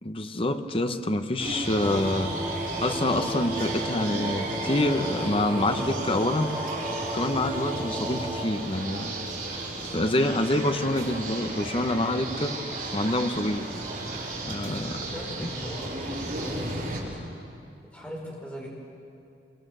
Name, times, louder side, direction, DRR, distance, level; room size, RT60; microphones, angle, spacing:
voice 1, 0.0-2.3 2.8-6.5 7.1-9.1 9.8-12.5 12.9-13.6 14.4-15.0 15.4-15.5, left 1 dB, 30° left, 8 dB, 1.1 m, -26 dB
sound 1, 1.4-17.0, right 2 dB, 55° right, 6.6 m, -34 dB
sound 2, 1.8-8.4, right 1 dB, 15° right, 3.5 m, -33 dB
voice 2, 14.5-17.1 17.8-18.7, equal, 10° left, -2 dB, 5.1 m, -40 dB
25.5 x 22.5 x 8.1 m, 2.5 s
head